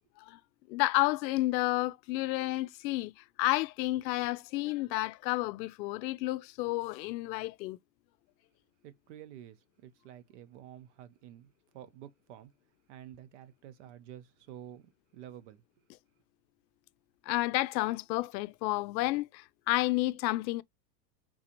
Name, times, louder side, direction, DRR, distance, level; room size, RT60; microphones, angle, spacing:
voice 1, 0.7-7.8 17.3-20.6, left 19 dB, 90° left, 0.6 m, -31 dB
voice 2, 8.8-12.5 12.9-15.8, right 11 dB, 45° right, 0.6 m, -50 dB
3.8 x 2.6 x 2.9 m
supercardioid pair, 170°, 50 cm